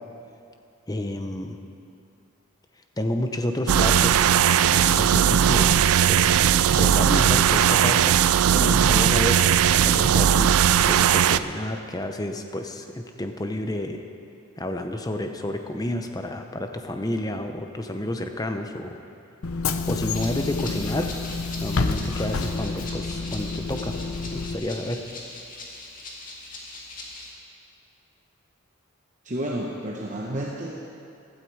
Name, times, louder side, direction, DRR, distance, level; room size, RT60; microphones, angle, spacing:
voice 1, 0.9-1.6 3.0-5.8 6.1-8.1 8.5-9.4 9.8-10.5 10.9-14.0 14.6-18.9 19.9-21.1 21.6-24.0 24.3-25.0, left 1 dB, 15° left, 5 dB, 0.7 m, -30 dB
sound 1, 3.7-11.4, right 9 dB, 80° right, 0.4 m, -18 dB
Bus / Engine, 19.4-24.6, left 4 dB, 80° left, 0.7 m, -29 dB
Rattle (instrument), 20.1-27.3, left 2 dB, 40° left, 1.9 m, -40 dB
voice 2, 29.2-30.9, right 1 dB, 35° right, -2 dB, 1.0 m, -31 dB
15.5 x 12.5 x 4.7 m, 2.6 s
head